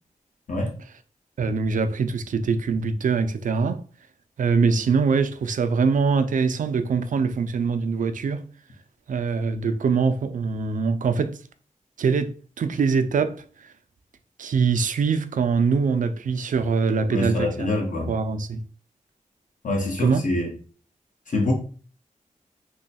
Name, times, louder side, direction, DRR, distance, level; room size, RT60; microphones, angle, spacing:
voice 1, 1.4-3.8 4.4-8.4 9.1-11.4 12.0-13.7 14.4-17.7 18.1-18.6 20.0-20.2, right 5 dB, 70° right, 0.4 m, -23 dB
voice 2, 17.1-18.1 19.6-20.5 21.3-21.5, left 2 dB, 70° left, 1.2 m, -25 dB
3.1 x 2.2 x 4.0 m
wide cardioid pair, 90°, 14 cm